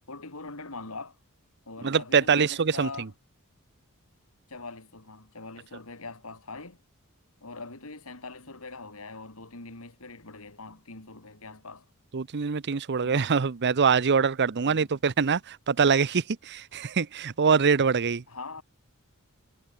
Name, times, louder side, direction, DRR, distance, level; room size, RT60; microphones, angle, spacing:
voice 1, 0.1-1.2 1.7-3.1 4.5-6.8 7.4-11.8 13.0-13.3 14.6-14.9 18.3-18.6, left 3 dB, 70° left, 3.3 m, -42 dB
voice 2, 1.8-3.1 12.1-18.2, right 5 dB, 50° right, 0.7 m, -24 dB
head